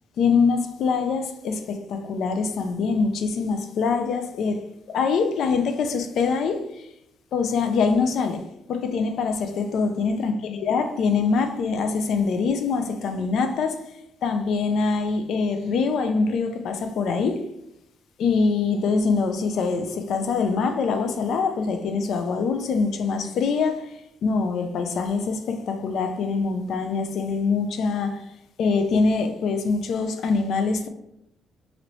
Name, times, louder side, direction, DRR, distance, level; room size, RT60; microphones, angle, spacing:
voice 1, 0.2-6.9 7.3-8.4 8.7-13.8 14.2-17.4 18.2-23.9 24.2-28.3 28.6-30.9, left 4 dB, 65° left, 7 dB, 0.3 m, -24 dB
3.0 x 2.5 x 3.0 m, 0.81 s
cardioid pair, 155°, 0 cm